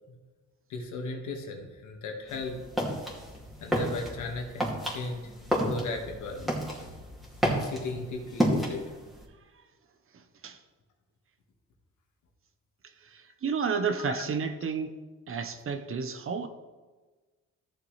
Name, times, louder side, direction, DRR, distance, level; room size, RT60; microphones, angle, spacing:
voice 1, 0.7-2.6 3.6-5.3 5.6-6.9 7.6-9.0 14.0-14.2, left 3 dB, 75° left, 1.8 m, -36 dB
sound 1, 2.3-9.2, equal, ahead, 2.5 m, -31 dB
voice 2, 13.1-14.9 15.3-16.5, right 5 dB, 45° right, 1.0 m, -31 dB
14.0 x 6.8 x 3.3 m
cardioid pair, 90°, 30 cm